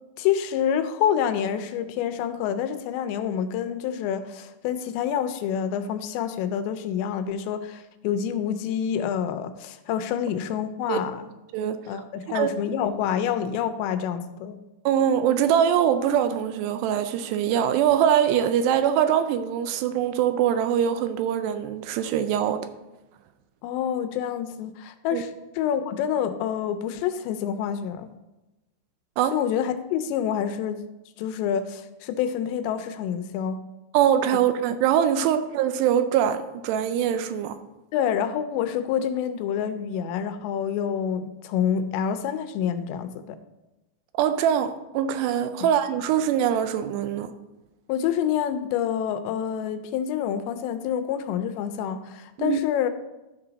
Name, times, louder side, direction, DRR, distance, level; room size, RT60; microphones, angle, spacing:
voice 1, 0.2-11.3 11.9-14.6 23.6-25.3 25.6-28.1 29.3-30.8 31.2-33.6 37.9-43.4 47.9-52.9, left 9 dB, 85° left, 9 dB, 2.8 m, -27 dB
voice 2, 14.9-22.7 25.1-25.2 29.2-29.4 33.9-37.6 44.2-47.3 52.4-52.6, right 9 dB, 80° right, 10 dB, 2.6 m, -23 dB
12.0 x 5.7 x 4.0 m, 1.0 s
omnidirectional pair, 5.0 m